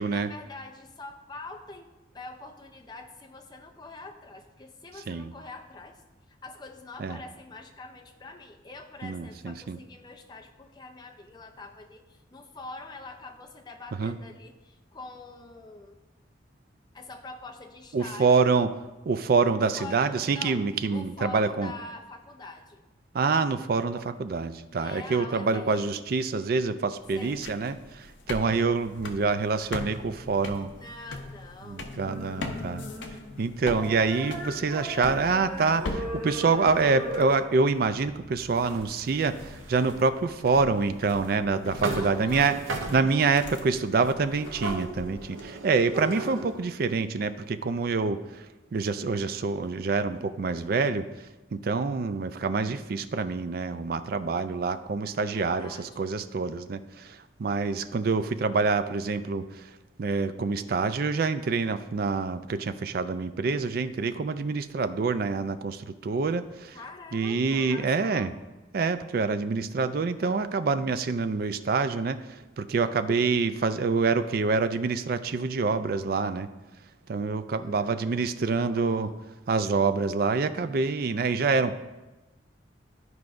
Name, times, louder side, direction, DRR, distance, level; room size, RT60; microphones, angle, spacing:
voice 1, 0.1-1.9 2.1-6.0 6.3-16.0 16.9-18.5 19.6-22.8 24.8-26.1 27.1-27.5 30.8-31.9 41.9-42.6 55.2-56.1 66.7-68.3 77.5-79.2, left 3 dB, 20° left, 3 dB, 0.5 m, -44 dB
voice 2, 9.0-9.8 14.0-14.2 17.9-18.7 19.1-21.7 23.1-30.7 31.7-32.8 33.4-42.6 42.9-48.5 48.7-51.3 51.5-59.7 60.0-66.8 67.1-68.3 68.7-76.5 77.1-79.1 79.5-81.8, right 4 dB, 50° right, 11 dB, 0.3 m, -26 dB
sound 1, 27.0-45.4, left 2 dB, 70° left, 0.7 m, -41 dB
sound 2, 32.0-33.4 33.7-37.3, right 1 dB, 5° left, 1.9 m, -38 dB
sound 3, 38.5-40.0 40.7-40.8 41.2-41.4 41.8-43.3 44.4-46.7, right 2 dB, 90° right, 0.7 m, -36 dB
12.5 x 4.7 x 2.5 m, 1.1 s
head